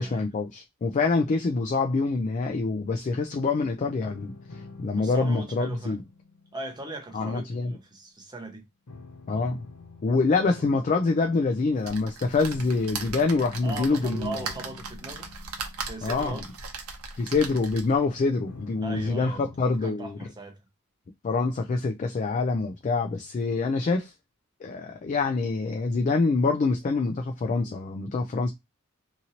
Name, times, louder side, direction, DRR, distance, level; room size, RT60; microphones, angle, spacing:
voice 1, 0.0-6.0 7.1-7.7 9.3-9.6 10.0-14.4 16.0-16.4 17.2-20.3 21.2-24.1 24.6-28.5, left 3 dB, 35° left, 0.3 m, -26 dB
sound 1, 4.0-8.1 8.9-17.7 18.5-19.6, left 3 dB, 80° left, 0.7 m, -48 dB
voice 2, 4.9-6.0 6.5-8.6 10.5-10.6 13.6-15.3 15.9-16.5 18.8-20.6, right 2 dB, 20° right, 0.8 m, -39 dB
sound 2, 11.8-18.1 18.6-18.7 19.0-19.1, right 4 dB, 80° right, 0.7 m, -38 dB
2.9 x 2.6 x 2.8 m
head